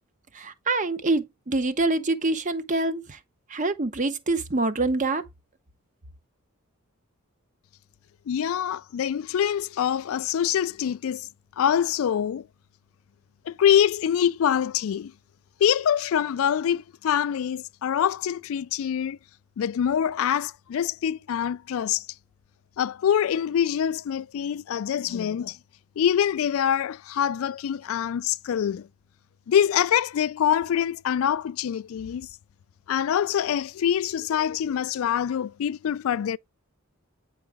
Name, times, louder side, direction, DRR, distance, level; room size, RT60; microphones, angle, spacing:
voice 1, 0.3-3.2 3.5-5.2, right 2 dB, 35° right, 0.8 m, -25 dB
voice 2, 8.3-11.3 11.6-12.5 13.5-15.1 15.6-19.2 19.6-22.1 22.8-25.6 26.0-28.9 29.5-32.3 32.9-36.4, left 9 dB, 75° left, 0.3 m, -25 dB
8.7 x 4.7 x 3.5 m
head